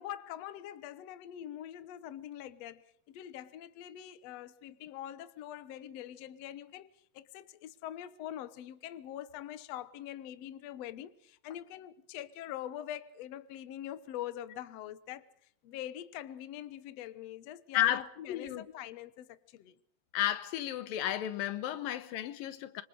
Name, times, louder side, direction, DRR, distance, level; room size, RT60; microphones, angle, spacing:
voice 1, 0.0-6.9 7.1-19.8, left 11 dB, 60° left, 1.9 m, -44 dB
voice 2, 17.7-18.7 20.1-22.8, left 12 dB, 85° left, 2.9 m, -32 dB
27.0 x 26.5 x 4.9 m
omnidirectional pair, 3.9 m